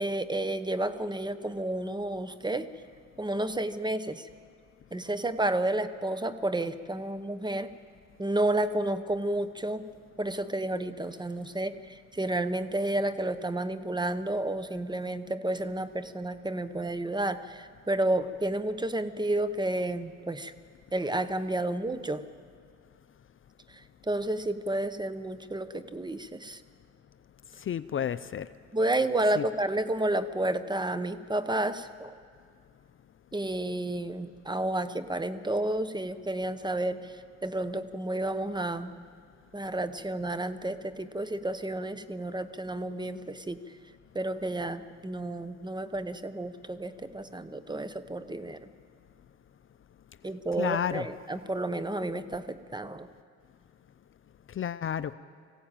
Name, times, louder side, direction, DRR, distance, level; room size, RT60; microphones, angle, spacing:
voice 1, 0.0-2.7 3.2-4.3 4.9-7.7 8.2-9.8 10.2-11.8 12.1-20.5 20.9-22.2 24.1-26.6 28.7-32.2 33.3-37.1 37.4-39.0 39.5-43.6 44.1-48.7 50.2-53.1, right 1 dB, 15° right, 12 dB, 0.9 m, -31 dB
voice 2, 27.7-28.5 29.4-29.5 50.6-51.1 54.6-55.1, left 9 dB, 45° left, 14 dB, 0.5 m, -31 dB
20.0 x 16.0 x 8.9 m, 2.1 s
cardioid pair, 90°, 30 cm